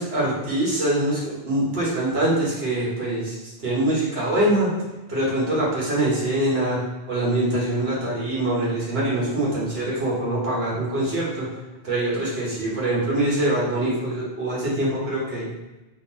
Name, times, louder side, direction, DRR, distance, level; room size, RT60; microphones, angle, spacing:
voice 1, 0.0-4.7 5.1-6.8 7.1-11.5 11.8-15.5, right 1 dB, 65° right, -6 dB, 1.5 m, -24 dB
3.8 x 3.2 x 2.9 m, 1.1 s
omnidirectional pair, 1.1 m